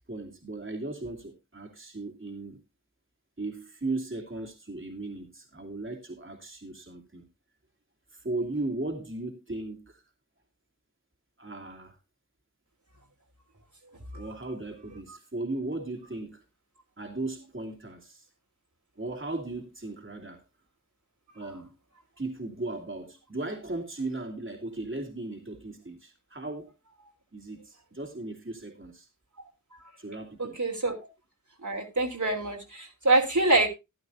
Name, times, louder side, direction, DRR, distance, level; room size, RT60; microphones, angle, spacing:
voice 1, 0.1-2.6 3.4-7.3 8.1-10.0 11.4-12.0 14.1-16.4 17.0-18.3 19.0-20.4 21.3-21.7 22.2-26.7 27.3-29.1 30.0-30.6, right 2 dB, 40° right, 2.8 m, -37 dB
voice 2, 30.4-31.0 31.6-33.7, right 2 dB, 65° right, 3.5 m, -25 dB
14.5 x 11.0 x 2.7 m
wide cardioid pair, 40°, 32 cm